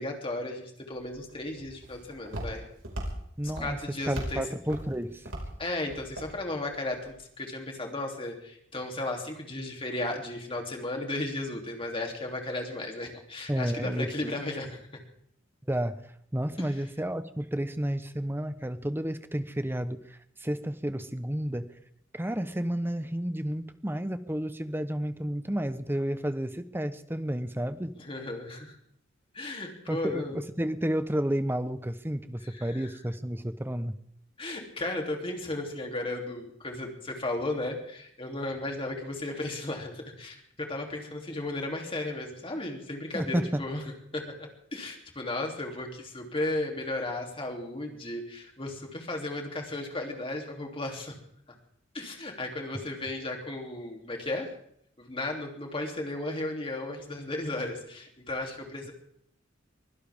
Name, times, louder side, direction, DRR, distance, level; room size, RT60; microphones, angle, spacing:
voice 1, 0.0-2.6 3.6-4.4 5.6-15.0 16.6-16.7 28.0-28.8 29.3-30.4 32.4-32.9 34.4-43.8 44.1-51.1 51.9-54.5 55.0-58.9, left 2 dB, 30° left, 2 dB, 3.1 m, -35 dB
Walk footsteps, 0.9-7.1, right 1 dB, 90° right, 5.2 m, -40 dB
voice 2, 3.4-5.3 13.5-14.4 15.7-16.0 16.3-21.7 22.1-28.0 29.9-34.0 43.1-43.6, equal, 10° right, 11 dB, 0.9 m, -31 dB
24.0 x 16.0 x 3.6 m, 0.69 s
head